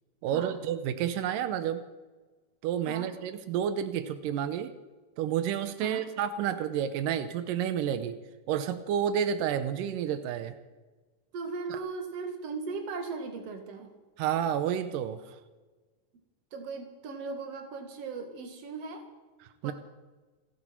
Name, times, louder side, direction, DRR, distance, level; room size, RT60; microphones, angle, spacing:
voice 1, 0.2-1.8 2.6-4.7 5.2-8.2 8.5-10.6 11.7-11.8 14.2-15.4 19.6-19.7, right 9 dB, 90° right, 10 dB, 2.5 m, -30 dB
voice 2, 11.3-13.9 16.5-19.1 19.6-19.7, right 4 dB, 55° right, 4 dB, 2.8 m, -38 dB
28.5 x 10.5 x 4.5 m, 1.3 s
omnidirectional pair, 3.7 m